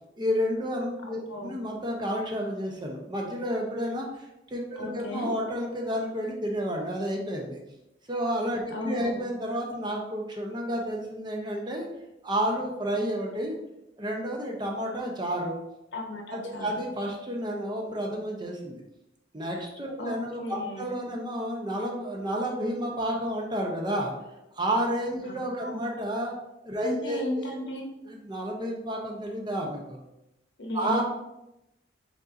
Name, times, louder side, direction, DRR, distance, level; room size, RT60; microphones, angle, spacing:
voice 1, 0.2-7.6 8.1-11.9 12.2-13.5 14.0-15.5 16.3-18.8 19.3-24.1 24.6-26.3 26.6-27.5 28.1-30.0 30.7-31.0, equal, 25° right, 0 dB, 0.6 m, -31 dB
voice 2, 4.8-5.3 8.7-9.3 15.9-16.7 20.0-20.9 25.2-25.8 26.8-27.9 30.6-31.0, left 1 dB, 70° left, 2 dB, 0.8 m, -34 dB
5.1 x 4.0 x 2.5 m, 0.90 s
head